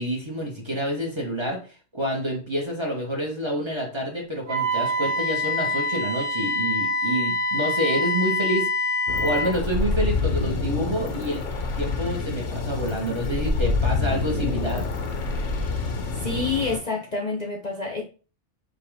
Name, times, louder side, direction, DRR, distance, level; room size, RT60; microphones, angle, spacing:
voice 1, 0.0-1.6 1.9-8.7 9.2-11.4 11.8-14.9, equal, 25° right, 1.1 m, -28 dB
Wind instrument woodwind instrument, 4.5-9.5, left 2 dB, 55° right, 1.3 m, -25 dB
sound 1, 9.1-16.8, left 3 dB, 85° left, 1.1 m, -27 dB
voice 2, 16.2-18.0, left 3 dB, 40° left, 0.8 m, -28 dB
5.4 x 2.5 x 3.4 m
omnidirectional pair, 1.3 m